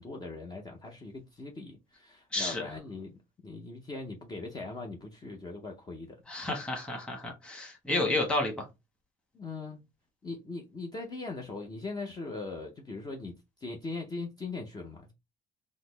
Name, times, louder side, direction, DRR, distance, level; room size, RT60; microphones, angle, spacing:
voice 1, 0.0-6.2 7.9-8.0 9.3-9.8 10.2-15.1, left 3 dB, 25° left, 0.7 m, -40 dB
voice 2, 2.3-2.7 6.3-8.7, left 2 dB, 5° left, 1.3 m, -31 dB
3.9 x 2.0 x 3.2 m
cardioid pair, 110°, 17 cm